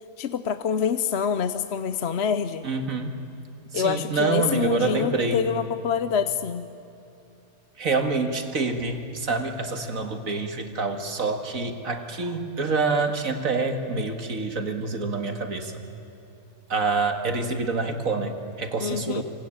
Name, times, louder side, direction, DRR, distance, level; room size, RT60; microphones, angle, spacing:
voice 1, 0.2-2.7 3.7-6.7 18.8-19.2, left 7 dB, 55° left, 11 dB, 0.9 m, -26 dB
voice 2, 2.6-3.2 3.7-5.5 7.8-15.7 16.7-19.2, right 3 dB, 70° right, 6 dB, 2.2 m, -27 dB
27.0 x 25.0 x 8.8 m, 2.8 s
omnidirectional pair, 1.5 m